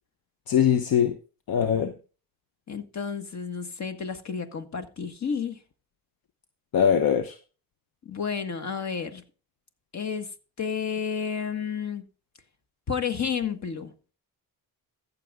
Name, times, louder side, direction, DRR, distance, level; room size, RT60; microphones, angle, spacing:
voice 1, 0.5-1.2 1.5-1.9 6.7-7.4, left 8 dB, 60° left, 1.0 m, -22 dB
voice 2, 2.7-5.6 8.0-9.2 9.9-10.3 10.6-12.0 12.9-13.9, left 6 dB, 45° left, 1.7 m, -31 dB
14.5 x 6.9 x 3.7 m
cardioid pair, 100°, 40 cm